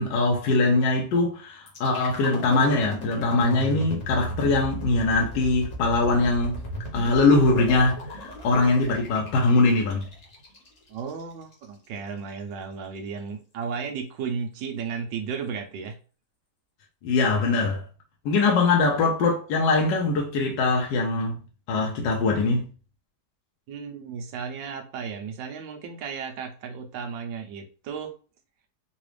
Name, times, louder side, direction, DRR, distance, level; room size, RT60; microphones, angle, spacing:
voice 1, 0.0-6.6 6.9-10.0 17.0-17.8 18.2-21.4 21.7-22.7, left 3 dB, 70° left, 1.3 m, -22 dB
sound 1, 1.7-11.7, equal, 45° left, 1.2 m, -36 dB
voice 2, 10.9-16.0 23.7-28.1, right 6 dB, 75° right, 1.3 m, -34 dB
3.9 x 2.4 x 3.1 m
omnidirectional pair, 2.2 m